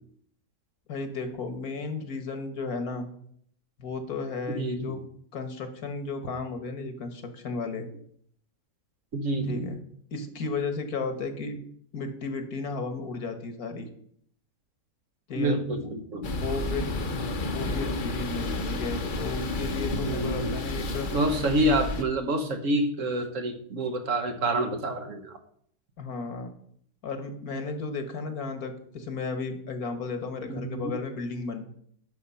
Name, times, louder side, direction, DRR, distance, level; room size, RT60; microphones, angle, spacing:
voice 1, 0.9-3.1 3.8-5.0 5.3-7.9 9.5-9.7 10.1-11.6 11.9-13.9 15.3-15.9 16.3-17.0 17.4-21.1 26.0-26.5 27.0-31.6, left 4 dB, 65° left, 7 dB, 1.8 m, -34 dB
voice 2, 4.5-5.0 9.1-9.8 15.3-16.3 19.9-20.6 21.1-25.4 30.5-30.9, right 1 dB, 55° right, 6 dB, 1.4 m, -28 dB
sound 1, 16.2-22.0, left 2 dB, 40° left, 0.9 m, -31 dB
9.5 x 6.5 x 5.6 m, 0.64 s
omnidirectional pair, 1.7 m